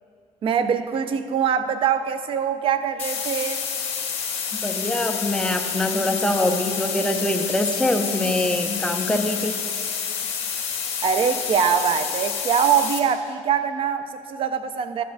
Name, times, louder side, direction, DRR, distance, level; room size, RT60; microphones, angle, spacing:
voice 1, 0.4-3.6 11.0-15.0, right 7 dB, 50° right, 10 dB, 0.5 m, -23 dB
sound 1, 3.0-13.0, left 7 dB, 60° left, 1.7 m, -28 dB
voice 2, 4.6-9.5, left 1 dB, 5° left, 3 dB, 0.6 m, -24 dB
13.0 x 9.1 x 2.6 m, 2.5 s
cardioid pair, 115°, 12 cm